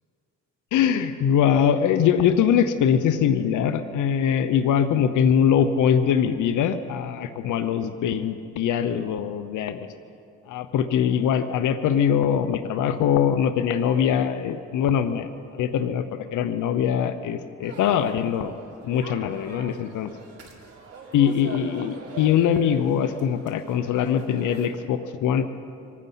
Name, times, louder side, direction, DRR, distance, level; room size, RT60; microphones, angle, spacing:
voice 1, 0.7-9.9 10.5-18.5 18.9-20.1 21.1-25.5, left 8 dB, 80° left, 10 dB, 0.8 m, -22 dB
sound 1, 17.6-24.7, right 3 dB, 50° right, 3.7 m, -43 dB
24.0 x 9.6 x 5.6 m, 2.5 s
cardioid pair, 90°, 30 cm